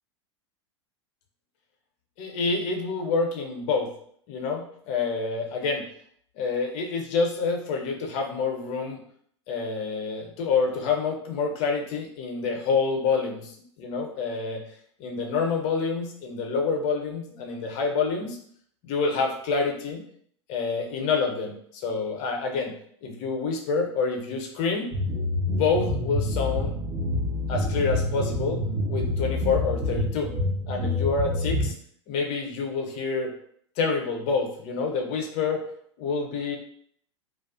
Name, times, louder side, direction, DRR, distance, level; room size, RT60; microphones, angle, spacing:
voice 1, 2.2-3.9 4.3-5.9 6.4-9.0 9.5-14.6 15.0-18.4 18.8-20.0 20.5-22.7 23.0-25.0 25.5-26.8 27.5-30.3 30.7-31.7 32.1-33.3 33.8-35.6 36.0-36.6, left 4 dB, 40° left, 2 dB, 0.5 m, -27 dB
sound 1, 24.9-31.7, left 1 dB, 25° right, 0.4 m, -27 dB
2.3 x 2.2 x 2.4 m, 0.62 s
figure-of-eight pair, 90°, 15 cm